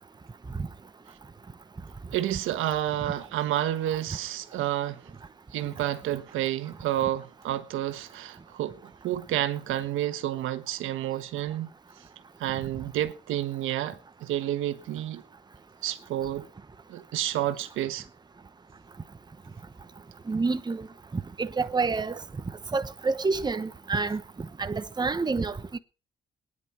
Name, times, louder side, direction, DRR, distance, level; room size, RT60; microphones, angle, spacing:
voice 1, 2.1-5.0 5.5-11.7 12.4-15.2 15.8-16.4 16.9-18.0, right 13 dB, 90° right, 1.4 m, -30 dB
voice 2, 20.3-20.9 21.4-22.2 22.7-24.2 24.6-25.8, right 4 dB, 20° right, 1.1 m, -28 dB
19.5 x 10.5 x 4.5 m
cardioid pair, 90°, 20 cm